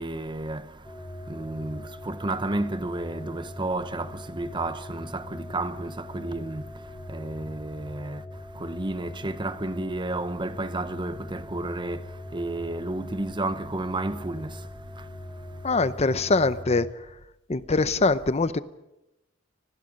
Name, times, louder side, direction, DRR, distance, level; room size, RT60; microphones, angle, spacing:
voice 1, 0.0-15.7, right 2 dB, 25° right, 0.9 m, -32 dB
sound 1, 0.8-16.9, left 1 dB, 10° left, 1.2 m, -41 dB
voice 2, 15.6-16.9 17.5-18.6, left 3 dB, 35° left, 0.7 m, -23 dB
30.0 x 20.5 x 5.3 m
head